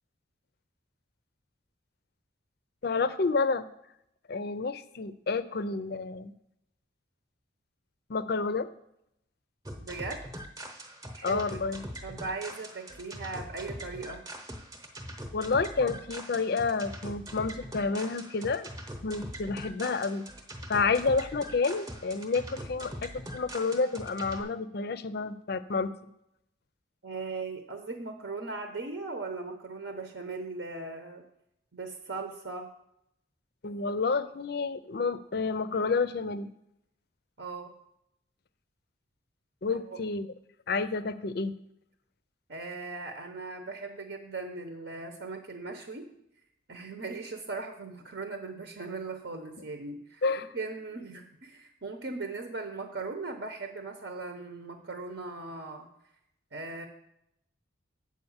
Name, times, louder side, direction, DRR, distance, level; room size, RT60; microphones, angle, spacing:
voice 1, 2.8-3.7 4.3-6.3 8.1-8.7 11.2-11.8 15.3-18.7 19.0-20.2 20.7-25.9 33.6-36.5 39.6-40.3 40.7-41.5 50.2-50.5, left 4 dB, 55° left, 14 dB, 0.5 m, -29 dB
sound 1, 9.6-24.4, equal, 20° right, 0.8 m, -42 dB
voice 2, 9.8-10.2 11.2-11.4 12.0-14.2 27.0-31.2 31.7-32.7 37.4-37.7 39.7-40.0 42.5-46.1 46.7-50.2 50.5-55.9 56.5-56.9, right 3 dB, 60° right, 4 dB, 0.8 m, -38 dB
7.8 x 4.9 x 7.2 m, 0.79 s
head